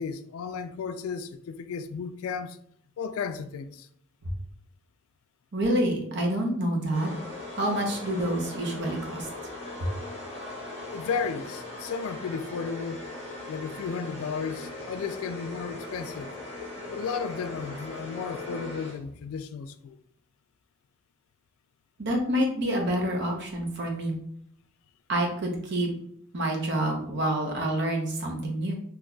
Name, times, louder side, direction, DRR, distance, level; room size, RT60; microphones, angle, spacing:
voice 1, 0.0-2.6 3.0-3.9 10.9-13.0 13.5-16.3 16.9-20.0, left 5 dB, 80° left, 0.3 m, -34 dB
voice 2, 5.5-7.1 7.6-9.3 22.0-24.1 25.1-25.9 26.3-28.7, right 1 dB, 55° right, 0.7 m, -27 dB
sound 1, 6.9-19.3, left 2 dB, 30° left, 0.9 m, -39 dB
3.8 x 2.9 x 2.3 m
head